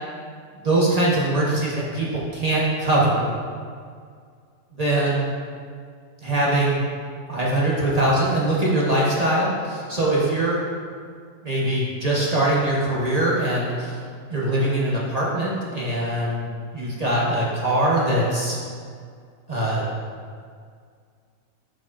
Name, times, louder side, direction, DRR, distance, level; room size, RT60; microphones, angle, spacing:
voice 1, 0.6-3.3 4.8-5.3 6.2-6.8 7.3-10.6 11.4-14.0 14.3-18.6 19.5-19.8, right 1 dB, 30° right, -6 dB, 1.1 m, -22 dB
8.8 x 6.2 x 2.5 m, 2.1 s
omnidirectional pair, 1.5 m